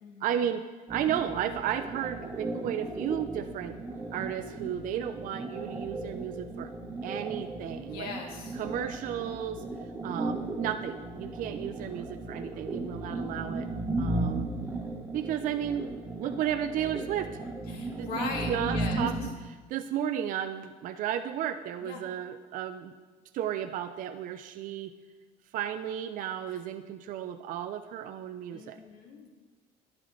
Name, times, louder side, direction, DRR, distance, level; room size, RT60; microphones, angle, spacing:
voice 1, 0.2-3.8 4.1-6.7 7.0-8.1 8.5-9.6 10.0-13.7 14.0-14.5 15.1-15.9 16.2-17.3 18.0-22.9 23.3-24.9 25.5-28.8, right 10 dB, 60° right, 9 dB, 0.5 m, -33 dB
sound 1, 0.9-19.3, right 2 dB, 15° right, 1.2 m, -36 dB
voice 2, 7.9-8.6 17.7-19.1 21.8-22.0 28.5-29.3, left 4 dB, 85° left, 0 dB, 1.9 m, -39 dB
11.5 x 9.9 x 3.2 m, 1.3 s
cardioid pair, 115°, 16 cm